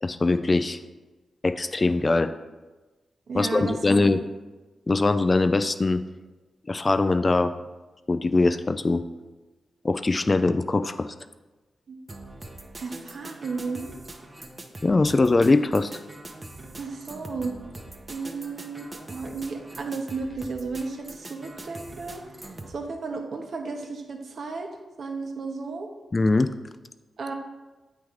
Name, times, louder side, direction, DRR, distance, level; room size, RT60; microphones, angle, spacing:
voice 1, 0.0-0.8 1.4-2.3 3.3-4.2 4.9-6.0 6.7-7.5 8.1-9.0 9.8-11.1 14.8-15.9 26.1-26.5, left 3 dB, 40° left, 11 dB, 0.4 m, -22 dB
voice 2, 3.3-3.8 4.1-4.2 11.9-12.0 12.8-13.9 16.8-17.5 18.1-24.7 25.0-25.9 27.2-27.3, right 4 dB, 70° right, 3 dB, 0.9 m, -34 dB
sound 1, 12.1-22.8, right 2 dB, 35° right, 0.8 m, -43 dB
8.0 x 3.2 x 4.9 m, 1.2 s
supercardioid pair, 40°, 0 cm